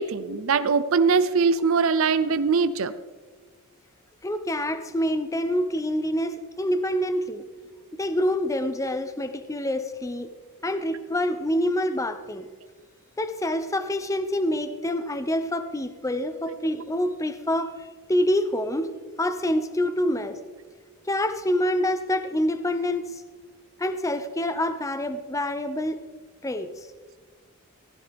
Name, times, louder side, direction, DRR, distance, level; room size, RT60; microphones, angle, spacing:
voice 1, 0.0-2.9, right 5 dB, 65° right, 13 dB, 0.5 m, -22 dB
voice 2, 4.2-7.4 7.9-10.3 10.6-12.5 13.2-18.9 19.2-20.4 21.1-23.1 23.8-26.0 26.4-26.7, left 1 dB, 15° left, 10 dB, 0.5 m, -26 dB
16.0 x 14.5 x 3.4 m, 1.4 s
head